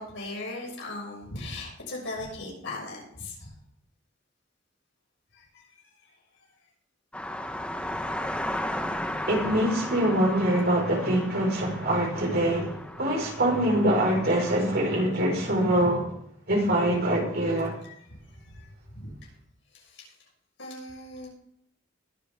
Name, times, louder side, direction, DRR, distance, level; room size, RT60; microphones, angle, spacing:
voice 1, 0.0-3.5 5.3-5.6 6.0-6.1 11.7-11.8 17.5-18.7 18.9-19.2 19.7-20.1 20.6-21.3, left 2 dB, 70° left, -2 dB, 6.5 m, -39 dB
sound 1, 7.1-14.8, left 1 dB, 5° left, 1.1 m, -35 dB
voice 2, 9.3-16.1 16.5-17.7, right 1 dB, 55° right, 0 dB, 5.0 m, -24 dB
21.0 x 8.6 x 3.7 m, 0.70 s
head